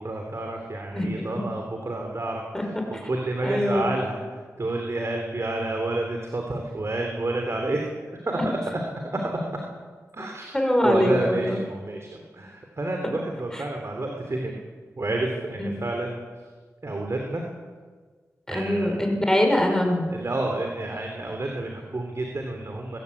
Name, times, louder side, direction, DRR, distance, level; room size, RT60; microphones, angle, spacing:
voice 1, 0.0-4.2 4.6-7.9 8.2-8.4 9.0-9.4 10.1-10.5 10.8-14.6 15.0-16.2 16.8-17.4 18.5-19.1 20.1-23.0, right 2 dB, 50° right, 2 dB, 3.4 m, -29 dB
voice 2, 0.9-1.4 2.5-2.6 3.4-4.0 8.4-8.5 10.5-11.6 13.5-13.6 15.6-15.7 18.5-20.1, left 1 dB, 10° left, 3 dB, 5.3 m, -23 dB
21.0 x 16.0 x 8.6 m, 1.5 s
cardioid pair, 55°, 6 cm